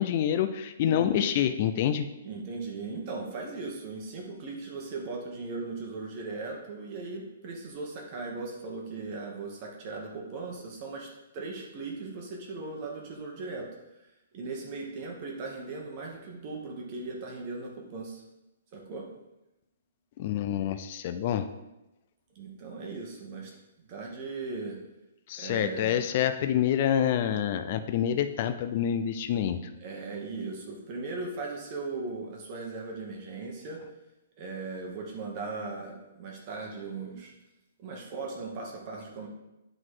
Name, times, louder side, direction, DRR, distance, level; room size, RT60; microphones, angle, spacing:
voice 1, 0.0-2.1 20.2-21.5 25.3-29.6, left 10 dB, 30° left, 9 dB, 0.4 m, -27 dB
voice 2, 0.8-1.3 2.2-13.7 14.3-18.2 18.7-19.1 22.3-23.5 23.8-24.8 25.4-26.1 29.8-33.8 34.4-37.3 37.8-39.3, right 3 dB, 25° right, 0 dB, 1.1 m, -38 dB
9.6 x 3.9 x 4.8 m, 0.97 s
hypercardioid pair, 175°, 0 cm